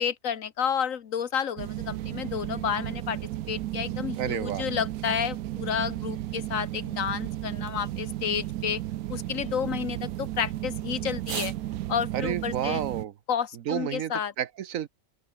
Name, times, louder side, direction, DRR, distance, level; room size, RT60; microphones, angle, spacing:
voice 1, 0.0-3.2 3.5-8.8 9.1-11.5 11.9-12.8 13.3-14.3, left 8 dB, 65° left, 1.4 m, -30 dB
sound 1, 1.6-13.1, right 14 dB, 90° right, 1.1 m, -34 dB
voice 2, 4.2-4.6 12.1-13.1 13.5-14.9, right 10 dB, 70° right, 1.2 m, -31 dB
open air
omnidirectional pair, 1.5 m